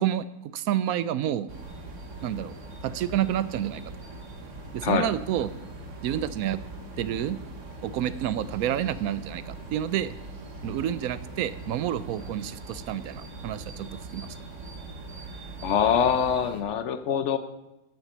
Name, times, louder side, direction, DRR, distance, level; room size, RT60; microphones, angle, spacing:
voice 1, 0.0-1.5 2.2-2.5 2.8-3.8 4.7-5.5 6.0-6.6 7.0-7.4 7.8-10.1 10.6-13.9 14.1-14.3, right 11 dB, 75° right, 15 dB, 1.0 m, -29 dB
sound 1, 1.5-16.6, right 2 dB, 55° right, 1.5 m, -41 dB
voice 2, 15.6-17.4, left 8 dB, 60° left, 11 dB, 0.9 m, -24 dB
9.3 x 7.3 x 6.7 m, 0.98 s
omnidirectional pair, 1.6 m